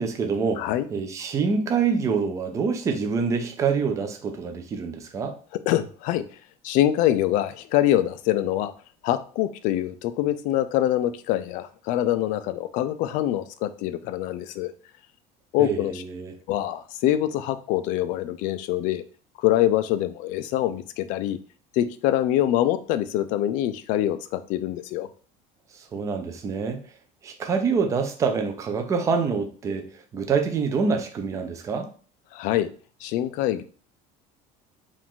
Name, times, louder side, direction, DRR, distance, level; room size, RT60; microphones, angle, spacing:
voice 1, 0.0-5.4 15.6-16.4 25.7-26.8 27.2-29.9 30.1-31.9, right 5 dB, 20° right, 4 dB, 0.5 m, -26 dB
voice 2, 5.7-6.2 6.6-8.7 9.0-14.7 15.5-16.0 16.5-19.0 19.4-21.4 21.7-25.1 32.3-32.7 33.0-33.6, left 13 dB, 50° left, 12 dB, 0.4 m, -24 dB
4.8 x 2.5 x 3.7 m, 0.41 s
cardioid pair, 175°, 17 cm